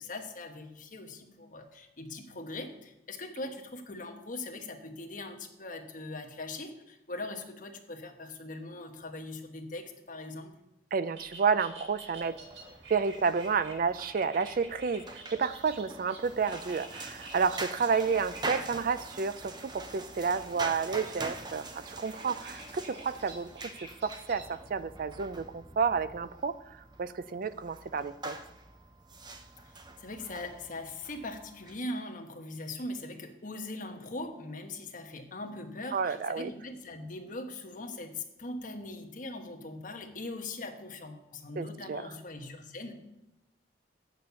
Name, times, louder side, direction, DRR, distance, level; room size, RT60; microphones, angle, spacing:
voice 1, 0.0-10.6 29.6-29.7 30.0-42.9, left 2 dB, 50° left, 4 dB, 1.2 m, -41 dB
voice 2, 10.9-12.4 12.9-23.5 24.0-28.4 35.9-36.5 41.6-42.0, right 5 dB, 55° right, 14 dB, 0.4 m, -30 dB
sound 1, 11.1-24.6, right 2 dB, 85° right, 2.0 m, -50 dB
sound 2, 12.1-31.8, right 2 dB, 25° right, 0.8 m, -44 dB
8.1 x 6.7 x 6.9 m, 0.92 s
head